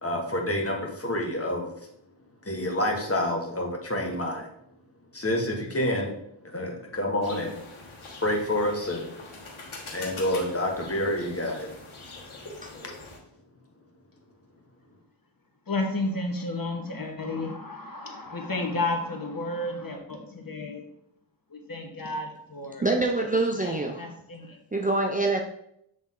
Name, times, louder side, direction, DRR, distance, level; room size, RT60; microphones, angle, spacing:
voice 1, 0.0-1.7 2.4-4.5 5.1-6.2 6.4-7.6 8.2-9.2 9.9-11.7, left 1 dB, 30° left, 1 dB, 1.4 m, -28 dB
sound 1, 7.2-13.2, left 3 dB, 75° left, 1.6 m, -43 dB
voice 2, 15.7-20.9 21.5-24.6, left 2 dB, 45° left, 2 dB, 1.3 m, -32 dB
voice 3, 22.8-24.1 24.7-25.4, right 2 dB, 15° right, 2 dB, 0.6 m, -25 dB
7.8 x 3.5 x 3.7 m, 0.75 s
wide cardioid pair, 55°, 48 cm